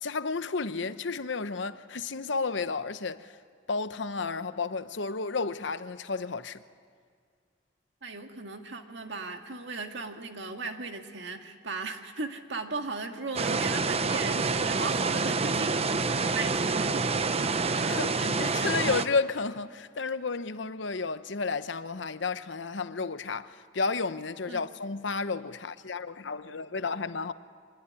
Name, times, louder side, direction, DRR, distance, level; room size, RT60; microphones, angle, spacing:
voice 1, 0.0-3.4 3.7-6.6 17.7-27.3, left 4 dB, 70° left, 0.9 m, -32 dB
voice 2, 8.0-17.5 24.5-24.6, right 3 dB, 70° right, 2.0 m, -37 dB
sound 1, 13.4-19.1, right 4 dB, 35° right, 0.8 m, -27 dB
25.0 x 20.0 x 9.8 m
head